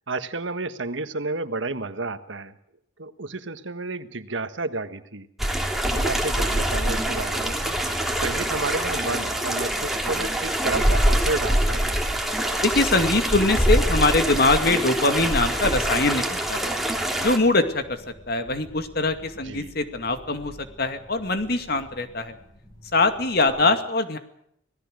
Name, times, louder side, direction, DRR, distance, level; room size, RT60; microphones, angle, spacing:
voice 1, 0.1-2.5 3.0-5.3 5.9-7.9 8.2-12.0 19.4-19.7 23.5-23.7, right 3 dB, 85° right, 10 dB, 1.6 m, -31 dB
sound 1, 5.4-17.4, right 1 dB, ahead, 2.9 m, -24 dB
voice 2, 12.6-16.7 17.2-22.4 22.9-24.2, left 2 dB, 55° left, 7 dB, 2.3 m, -23 dB
sound 2, 15.1-23.5, equal, 25° left, 8.0 m, -50 dB
26.5 x 18.0 x 6.6 m, 0.69 s
head